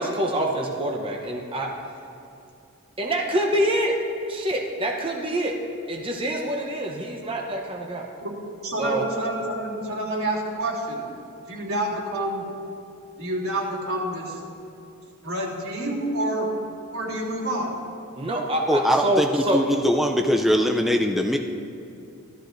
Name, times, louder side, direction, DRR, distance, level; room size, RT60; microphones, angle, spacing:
voice 1, 0.0-1.7 3.0-3.9 4.3-5.5 5.9-8.1 8.8-9.1 18.2-19.6, right 1 dB, 25° right, 0 dB, 0.8 m, -26 dB
voice 2, 8.6-11.0 11.5-12.4 13.2-14.4 15.2-16.5 16.9-17.7, right 1 dB, 85° right, -5 dB, 3.1 m, -28 dB
voice 3, 18.7-21.4, equal, ahead, 2 dB, 0.4 m, -21 dB
16.5 x 13.0 x 2.6 m, 2.6 s
head